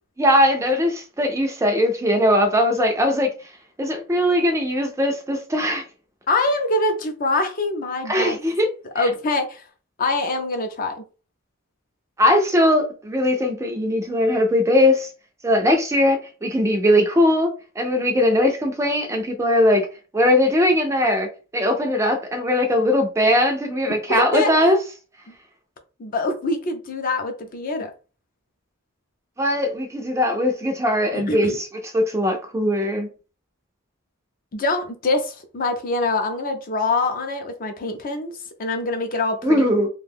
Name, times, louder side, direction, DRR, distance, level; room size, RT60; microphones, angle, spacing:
voice 1, 0.2-3.3 3.8-5.8 8.1-8.7 9.0-9.1 12.2-15.1 15.4-17.5 17.8-19.9 20.1-24.8 29.4-33.1 39.4-39.9, left 1 dB, 15° right, 0.4 m, -20 dB
voice 2, 6.3-8.4 8.9-9.6 10.0-11.0 24.1-24.5 26.0-27.9 31.1-31.6 34.5-39.7, left 2 dB, 40° left, 0.5 m, -24 dB
2.5 x 2.2 x 3.3 m
head